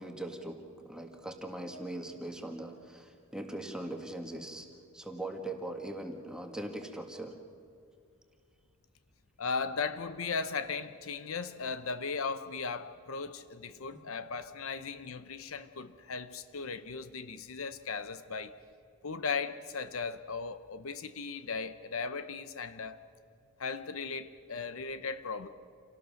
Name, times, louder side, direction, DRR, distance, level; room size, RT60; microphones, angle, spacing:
voice 1, 0.0-4.7 4.9-7.4 13.9-14.0, right 1 dB, 5° right, 1.7 m, -41 dB
voice 2, 9.4-18.5 19.0-23.0 23.6-25.5, left 5 dB, 65° left, 0.8 m, -37 dB
27.5 x 18.0 x 6.4 m
head